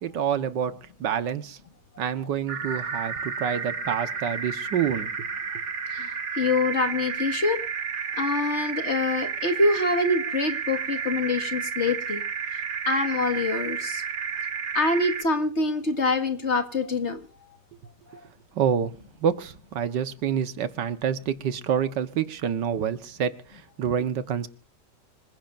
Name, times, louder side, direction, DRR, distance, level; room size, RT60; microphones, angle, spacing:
voice 1, 0.0-1.6 2.0-5.3 18.6-18.9 19.2-24.5, right 8 dB, 90° right, 1.8 m, -27 dB
sound 1, 2.5-15.2, right 6 dB, 65° right, 2.3 m, -31 dB
voice 2, 5.9-7.6 8.2-12.2 12.5-14.0 14.7-17.2 18.1-18.2, left 2 dB, 40° left, 2.0 m, -25 dB
26.0 x 16.0 x 2.6 m
omnidirectional pair, 1.9 m